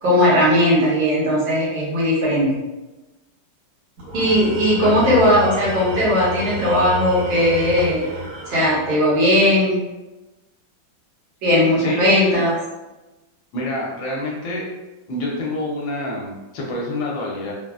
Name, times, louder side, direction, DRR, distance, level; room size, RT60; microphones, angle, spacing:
voice 1, 0.0-2.5 4.1-8.1 8.5-9.8 11.4-12.5, equal, 70° right, -7 dB, 1.7 m, -17 dB
Tools, 4.0-9.3, left 2 dB, 85° right, 1.9 m, -30 dB
voice 2, 11.8-12.1 13.5-14.7 15.1-17.5, left 1 dB, 75° left, -3 dB, 1.3 m, -27 dB
3.8 x 2.0 x 2.3 m, 1.1 s
omnidirectional pair, 2.2 m